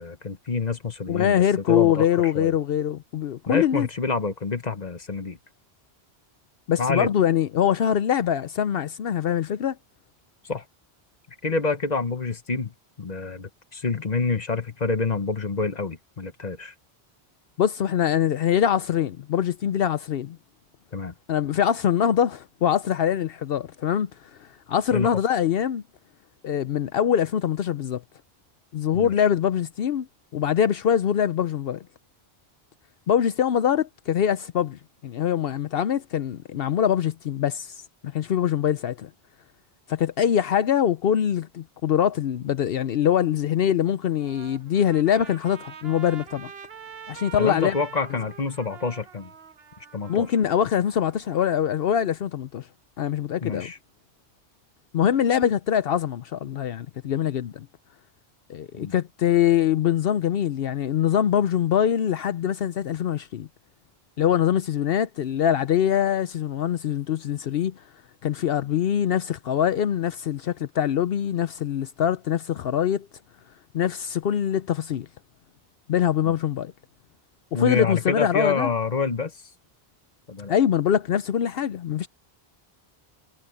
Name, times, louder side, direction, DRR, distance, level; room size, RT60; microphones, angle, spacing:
voice 1, 0.0-1.4 1.7-2.1 2.3-2.5 3.5-5.4 6.8-7.1 10.5-10.6 11.4-12.7 13.0-16.7 20.9-21.1 24.9-25.1 28.9-29.2 47.4-49.3 49.9-50.3 53.4-53.8 58.7-58.9 77.5-79.3 80.3-80.5, left 4 dB, 45° left, 1.1 m, -27 dB
voice 2, 1.1-3.9 6.7-9.8 17.6-20.4 21.3-24.1 24.7-25.8 26.4-28.0 28.7-30.1 30.3-31.8 33.1-37.7 38.0-39.1 39.9-46.5 47.1-47.7 50.1-52.7 53.0-53.7 54.9-57.7 58.5-63.5 64.2-67.7 68.2-73.1 73.7-75.1 75.9-76.7 77.5-78.7 80.5-82.1, left 9 dB, 70° left, 0.8 m, -23 dB
Trumpet, 44.1-51.5, right 7 dB, 75° right, 1.3 m, -45 dB
omnidirectional pair, 1.1 m